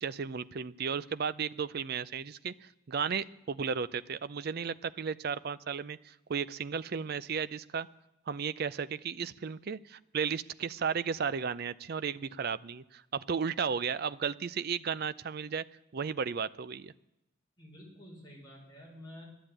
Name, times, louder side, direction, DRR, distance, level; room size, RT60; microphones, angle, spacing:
voice 1, 0.0-7.9 8.3-15.6 15.9-16.9, right 6 dB, 45° right, 15 dB, 0.4 m, -34 dB
voice 2, 17.6-19.3, equal, 20° left, -3 dB, 4.8 m, -50 dB
12.0 x 11.5 x 9.0 m, 0.94 s
head